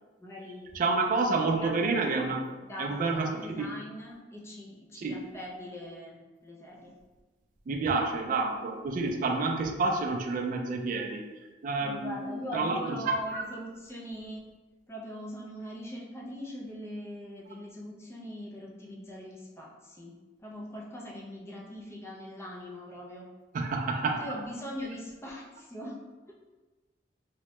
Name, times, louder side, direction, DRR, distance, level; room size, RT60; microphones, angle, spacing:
voice 1, 0.2-0.8 1.1-1.3 1.5-2.0 2.6-6.9 11.8-14.4 14.9-23.3 24.2-26.0, equal, 15° left, -3 dB, 0.5 m, -41 dB
voice 2, 0.7-2.5 2.8-3.7 5.0-5.2 7.7-11.2 11.6-12.8 13.1-13.4 23.5-24.3, right 3 dB, 45° right, 2 dB, 0.3 m, -29 dB
2.8 x 2.1 x 3.0 m, 1.2 s
head